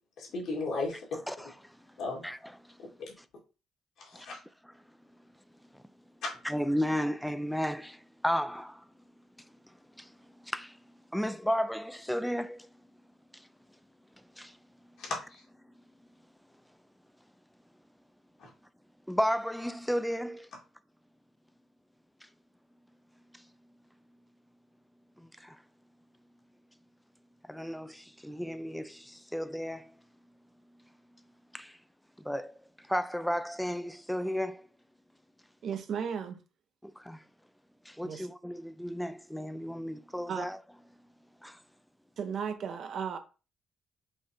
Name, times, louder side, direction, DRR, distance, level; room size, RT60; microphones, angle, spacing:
voice 1, 0.2-1.0 2.0-2.2 3.0-3.1 4.0-4.4 6.2-6.3 15.0-15.4 18.4-18.5, left 3 dB, 80° left, 2.2 m, -35 dB
voice 2, 6.4-8.8 10.0-10.1 10.4-10.8 11.1-12.7 13.3-13.4 14.4-14.6 19.1-20.5 25.2-25.6 27.5-29.9 31.5-31.8 32.2-32.5 32.9-34.7 37.0-37.2 37.9-40.6 41.4-41.6, equal, ahead, 0.4 m, -33 dB
voice 3, 35.6-36.4 38.0-38.3 40.3-40.5 42.2-43.2, right 7 dB, 60° right, 0.8 m, -35 dB
5.2 x 2.4 x 4.3 m
cardioid pair, 90°, 0 cm